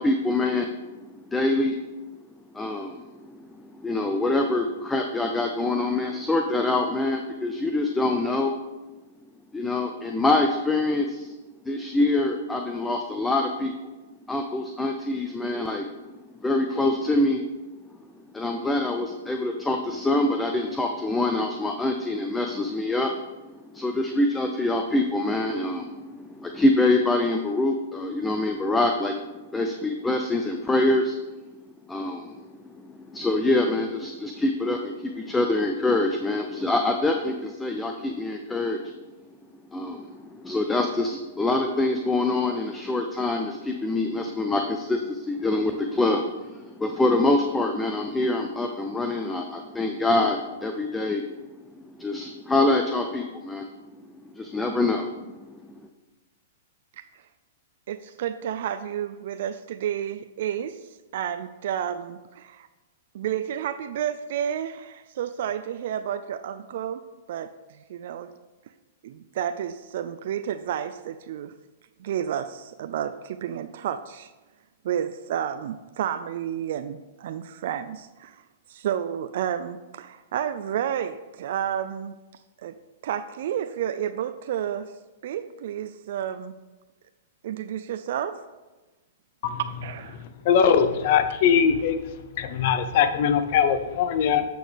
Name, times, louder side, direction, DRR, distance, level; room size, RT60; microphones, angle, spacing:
voice 1, 0.0-1.8 2.5-8.5 9.5-11.3 11.7-13.7 14.3-15.9 16.4-17.4 18.3-23.2 23.6-29.1 29.5-31.2 31.9-32.5 32.8-38.9 39.7-51.4 51.9-53.7 54.3-55.8, left 2 dB, 10° left, 4 dB, 0.5 m, -25 dB
voice 2, 57.9-62.7 63.1-67.0 67.3-68.3 69.0-71.5 72.0-74.3 74.8-78.4 78.7-82.2 82.6-82.7 83.0-84.9 85.2-86.6 87.4-88.4 89.8-90.2, right 9 dB, 65° right, 10 dB, 0.3 m, -31 dB
voice 3, 90.2-92.0 92.4-94.5, left 7 dB, 55° left, 10 dB, 0.6 m, -21 dB
8.2 x 6.0 x 3.4 m, 1.2 s
hypercardioid pair, 125°, 0 cm